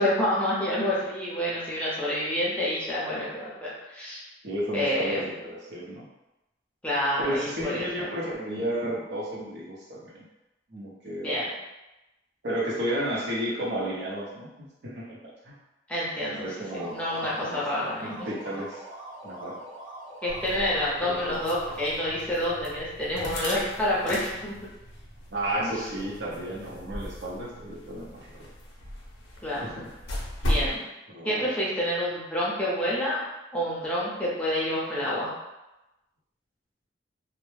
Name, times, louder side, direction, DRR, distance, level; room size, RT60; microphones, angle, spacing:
voice 1, 0.0-4.2 4.7-5.3 6.8-8.1 11.2-11.5 15.9-18.3 20.2-24.6 25.6-25.8 29.4-29.8 30.5-30.8 31.2-33.2 33.5-35.3, left 1 dB, 5° left, -7 dB, 0.5 m, -28 dB
voice 2, 4.4-6.1 7.2-10.2 10.7-11.4 12.4-15.6 16.4-17.0 17.2-18.8 19.2-19.6 21.0-21.4 25.3-28.5 29.6-29.9 31.1-31.5, right 1 dB, 65° right, -5 dB, 0.7 m, -33 dB
sound 1, 16.6-22.3, right 1 dB, 25° right, 0.8 m, -43 dB
sound 2, 20.3-30.8, left 1 dB, 90° left, 0.5 m, -36 dB
2.0 x 2.0 x 3.1 m, 0.99 s
head